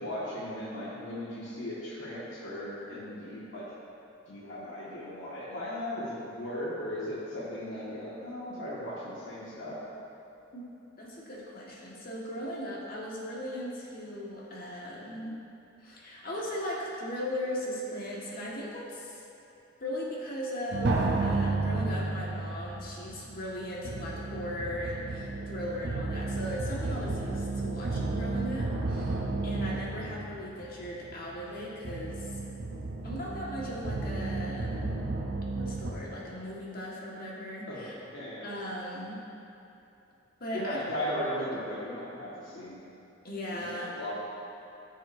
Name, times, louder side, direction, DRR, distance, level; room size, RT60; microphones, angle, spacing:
voice 1, 0.0-3.6 4.3-9.8 37.7-38.5 40.5-42.8 43.5-44.3, left 1 dB, 90° left, -10 dB, 1.8 m, -37 dB
voice 2, 10.9-15.4 15.8-19.2 19.8-32.3 33.0-35.0 35.5-37.9 38.4-39.2 40.4-40.8 41.1-41.7 43.2-43.9, equal, 50° left, -5 dB, 1.6 m, -38 dB
sound 1, 20.7-35.9, right 3 dB, 60° right, 0.8 m, -32 dB
14.5 x 6.4 x 2.7 m, 2.9 s
head